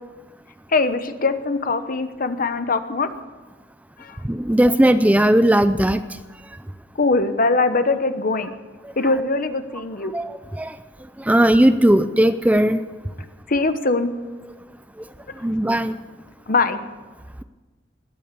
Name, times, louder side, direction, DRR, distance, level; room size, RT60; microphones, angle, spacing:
voice 1, 0.7-3.1 4.0-4.2 7.0-8.5 9.0-10.1 13.5-14.1 16.5-16.8, left 3 dB, 50° left, 10 dB, 1.0 m, -21 dB
voice 2, 4.2-6.0 10.1-10.8 11.2-12.8 15.4-16.0, right 1 dB, 10° right, 11 dB, 0.5 m, -17 dB
20.5 x 9.0 x 6.9 m, 1.3 s
head